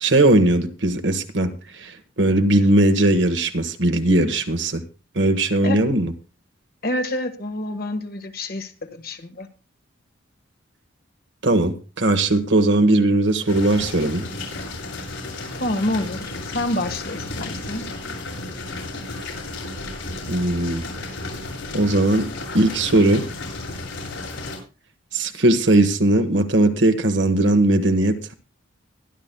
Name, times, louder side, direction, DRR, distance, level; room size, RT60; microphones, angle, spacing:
voice 1, 0.0-4.8 5.1-6.1 11.4-14.2 20.3-20.8 21.7-22.3 22.5-23.3 25.1-28.3, right 1 dB, 60° right, 1.3 m, -19 dB
voice 2, 6.8-9.5 15.6-17.9, left 1 dB, 50° left, 1.5 m, -27 dB
sound 1, 13.5-24.6, left 2 dB, 85° left, 7.7 m, -33 dB
23.5 x 11.5 x 2.2 m
head